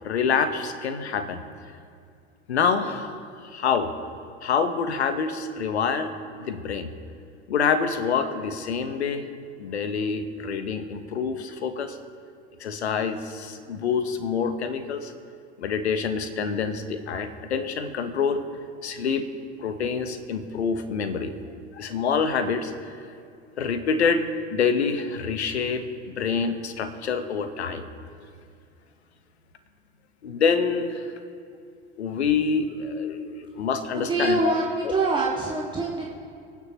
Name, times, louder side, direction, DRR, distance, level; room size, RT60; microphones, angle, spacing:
voice 1, 0.0-1.4 2.5-3.9 4.4-6.9 7.5-9.3 9.6-12.0 12.6-15.1 15.6-18.4 18.8-19.3 19.6-21.3 21.7-23.0 23.6-24.2 24.5-25.8 26.2-27.9 30.2-31.1 32.0-34.5, left 6 dB, 70° left, 9 dB, 1.3 m, -26 dB
voice 2, 33.9-36.1, right 3 dB, 15° right, -4 dB, 1.9 m, -25 dB
28.5 x 9.6 x 3.1 m, 2.4 s
figure-of-eight pair, 75°, 34 cm